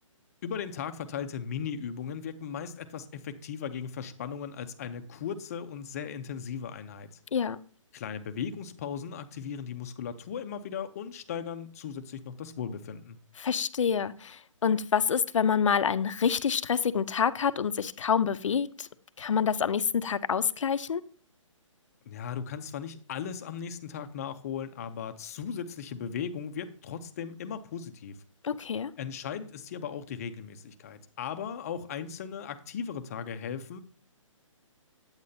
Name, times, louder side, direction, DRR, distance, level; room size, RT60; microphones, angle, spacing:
voice 1, 0.4-7.1 7.9-13.2 22.1-28.2 29.0-33.8, left 7 dB, 30° left, 0.6 m, -37 dB
voice 2, 13.4-18.9 19.2-21.0 28.4-28.9, left 7 dB, 70° left, 0.6 m, -27 dB
8.7 x 8.3 x 2.7 m
hypercardioid pair, 160°, 17 cm